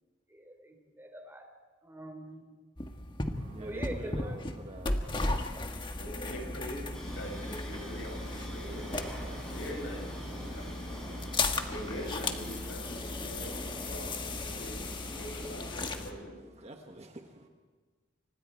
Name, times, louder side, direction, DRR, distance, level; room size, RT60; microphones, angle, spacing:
voice 1, 0.3-1.4 1.8-2.4 3.6-4.6, right 1 dB, 15° right, 4 dB, 3.5 m, -43 dB
sound 1, 2.8-16.1, left 2 dB, 25° left, 1.5 m, -36 dB
voice 2, 3.4-5.3 16.4-17.5, right 1 dB, 35° right, 3 dB, 1.4 m, -46 dB
voice 3, 5.9-9.1 9.4-11.0 11.6-16.4, equal, 90° left, 2 dB, 6.5 m, -43 dB
sound 2, 6.9-16.2, equal, 5° left, 7.6 m, -47 dB
29.5 x 25.0 x 4.5 m, 1.4 s
head